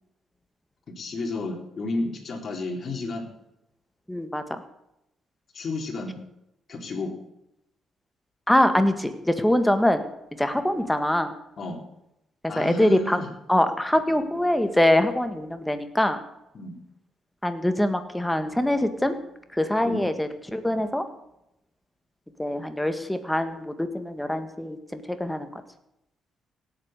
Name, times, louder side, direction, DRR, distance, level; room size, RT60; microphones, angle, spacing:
voice 1, 1.0-3.3 5.5-6.2 6.7-7.1 11.6-11.8 12.5-13.3 16.5-16.8 19.8-20.0, left 2 dB, 45° left, 2 dB, 3.8 m, -32 dB
voice 2, 4.1-4.6 8.5-10.0 10.4-11.3 12.6-13.2 13.5-16.2 17.4-19.1 19.5-21.0 22.4-25.6, left 1 dB, 5° left, 9 dB, 1.7 m, -24 dB
17.5 x 8.3 x 6.7 m, 0.85 s
cardioid pair, 90°, 0 cm